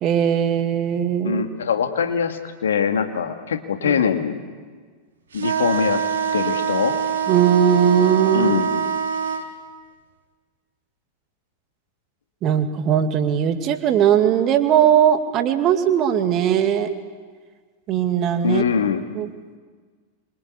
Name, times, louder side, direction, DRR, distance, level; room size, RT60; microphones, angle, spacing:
voice 1, 0.0-1.4 3.8-3.9 7.3-8.5 12.4-16.9 17.9-18.6 19.1-19.3, right 9 dB, 35° right, 7 dB, 2.4 m, -19 dB
voice 2, 1.2-4.4 5.3-6.0 6.3-7.0 8.3-8.9 18.4-19.0, left 7 dB, 65° left, 6 dB, 2.3 m, -22 dB
sound 1, 5.3-9.5, right 7 dB, 65° right, 3.1 m, -24 dB
27.5 x 24.5 x 8.5 m, 1.5 s
figure-of-eight pair, 90°, 0 cm